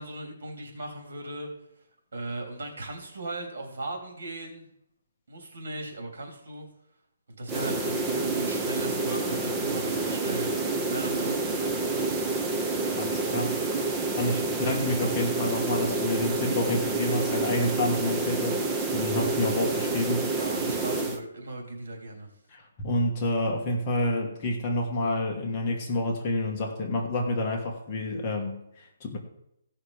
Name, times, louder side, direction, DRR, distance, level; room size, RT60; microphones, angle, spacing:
voice 1, 0.0-1.5 2.1-4.7 5.3-6.7 7.4-10.5 10.9-12.2 14.3-14.6 20.3-22.3, right 2 dB, 65° right, 2 dB, 3.3 m, -38 dB
sound 1, 7.5-21.2, right 3 dB, 10° right, 0.6 m, -28 dB
voice 2, 13.0-13.6 14.2-18.6 18.9-20.4 22.5-29.2, left 1 dB, 20° left, 0 dB, 1.3 m, -28 dB
15.5 x 5.8 x 5.0 m, 0.79 s
hypercardioid pair, 175°, 0 cm